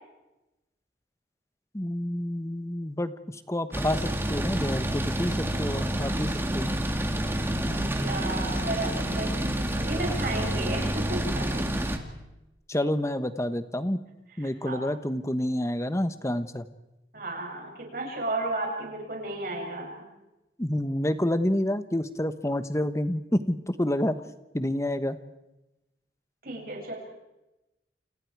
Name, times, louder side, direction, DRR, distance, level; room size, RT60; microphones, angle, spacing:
voice 1, 1.7-6.7 7.7-8.1 12.7-14.0 14.4-16.6 20.6-24.2 24.5-25.2, left 1 dB, 15° left, 11 dB, 1.2 m, -29 dB
sound 1, 3.7-12.0, right 1 dB, 15° right, 2.0 m, -28 dB
voice 2, 7.2-11.6 14.4-14.8 17.1-20.0 26.4-26.9, right 2 dB, 55° right, 0 dB, 7.4 m, -34 dB
29.0 x 28.5 x 4.8 m, 0.96 s
head